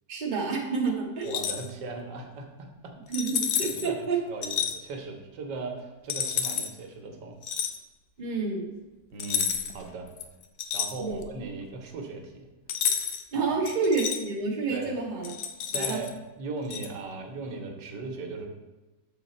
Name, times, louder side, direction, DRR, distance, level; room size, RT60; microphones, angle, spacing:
voice 1, 0.1-1.4 3.1-4.2 8.2-8.7 11.0-11.2 13.3-15.3 15.7-16.0, right 4 dB, 30° right, -2 dB, 1.1 m, -29 dB
sound 1, 1.2-1.7 3.1-3.9 4.4-4.7 6.1-6.7 7.4-7.8 9.2-9.8 10.2-11.4 12.7-13.2 13.7-14.2 15.2-16.1 16.7-16.9, left 8 dB, 70° left, 1.0 m, -30 dB
voice 2, 1.2-2.9 3.6-7.3 9.1-10.1 10.7-12.5 13.3-13.6 14.7-15.0 15.7-16.1 16.4-18.5, right 3 dB, 90° right, 3 dB, 1.5 m, -38 dB
6.5 x 4.1 x 4.1 m, 1.1 s
omnidirectional pair, 1.8 m